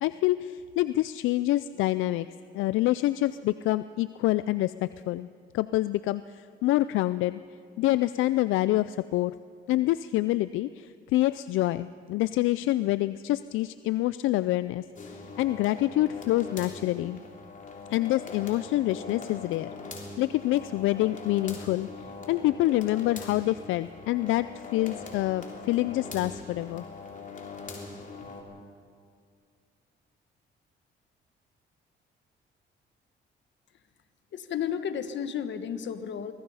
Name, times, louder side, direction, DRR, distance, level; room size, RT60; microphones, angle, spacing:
voice 1, 0.0-2.3 2.5-5.3 5.5-7.4 7.8-9.3 9.7-17.2 17.9-19.7 20.2-21.9 22.3-26.8, left 16 dB, 85° left, 15 dB, 0.4 m, -26 dB
sound 1, 15.0-28.4, left 4 dB, 40° left, 3.5 m, -42 dB
voice 2, 34.3-36.3, left 8 dB, 65° left, 10 dB, 1.3 m, -32 dB
24.5 x 19.5 x 5.6 m, 2.2 s
cardioid pair, 90°, 20 cm